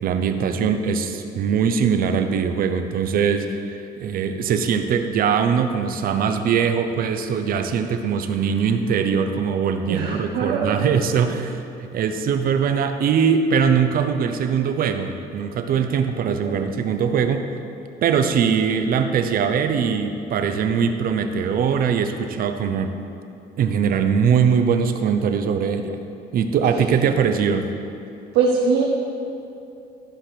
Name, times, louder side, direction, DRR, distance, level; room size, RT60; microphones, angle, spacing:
voice 1, 0.0-17.5 18.0-22.9 23.6-26.0 26.3-27.7, right 6 dB, 60° right, 7 dB, 0.8 m, -21 dB
voice 2, 9.9-10.9 16.3-16.7 28.3-28.8, right 5 dB, 85° right, -2 dB, 1.1 m, -22 dB
12.5 x 5.1 x 5.9 m, 2.7 s
cardioid pair, 110°, 17 cm